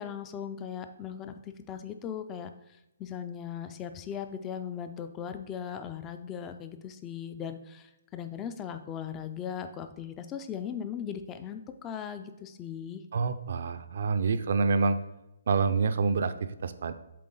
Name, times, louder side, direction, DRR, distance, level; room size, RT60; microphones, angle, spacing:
voice 1, 0.0-2.5 3.0-13.0, left 8 dB, 15° left, 8 dB, 0.3 m, -38 dB
voice 2, 13.1-15.0 15.5-16.9, right 4 dB, 60° right, 10 dB, 0.4 m, -27 dB
7.6 x 4.0 x 3.8 m, 0.91 s
hypercardioid pair, 170°, 0 cm